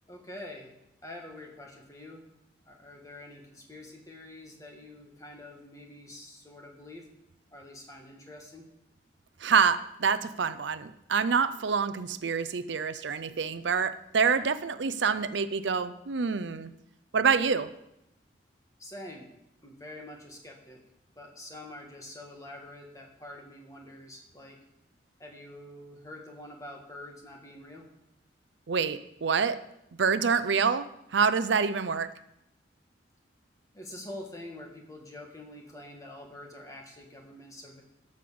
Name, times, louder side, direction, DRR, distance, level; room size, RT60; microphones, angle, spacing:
voice 1, 0.1-0.7 1.0-2.2 2.7-7.1 7.5-8.7 18.8-19.3 19.6-20.8 21.2-24.6 25.2-27.9 33.7-37.8, left 1 dB, 20° left, 1 dB, 1.7 m, -46 dB
voice 2, 9.4-16.7 17.1-17.7 28.7-29.6 30.0-30.9 31.1-32.1, right 6 dB, 80° right, 13 dB, 0.6 m, -26 dB
13.0 x 5.3 x 6.9 m, 0.83 s
head